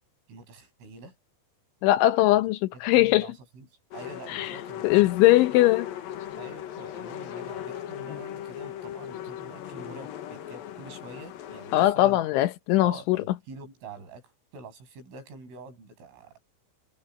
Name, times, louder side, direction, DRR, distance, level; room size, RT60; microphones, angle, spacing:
voice 1, 0.3-1.1 3.0-3.7 3.9-5.0 6.4-12.2 12.8-16.4, right 3 dB, 85° right, 10.0 m, -46 dB
voice 2, 1.8-3.3 4.3-4.5 4.8-5.9 11.7-13.2, left 16 dB, 80° left, 3.4 m, -20 dB
sound 1, 3.9-11.9, left 11 dB, 60° left, 2.7 m, -38 dB
omnidirectional pair, 5.6 m